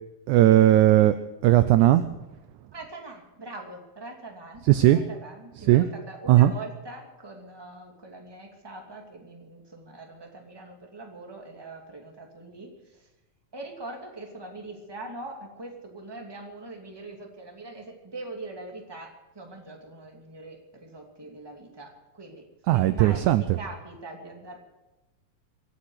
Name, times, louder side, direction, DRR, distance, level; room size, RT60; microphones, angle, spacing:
voice 1, 0.3-1.2 1.4-2.0 4.7-5.0 5.7-5.9 6.3-6.5 22.7-23.6, right 14 dB, 80° right, 11 dB, 1.8 m, -17 dB
voice 2, 2.7-4.6 4.9-13.1 13.5-22.5 22.7-24.6, right 2 dB, 10° right, 1 dB, 2.0 m, -42 dB
25.0 x 8.8 x 6.4 m, 1.0 s
omnidirectional pair, 4.0 m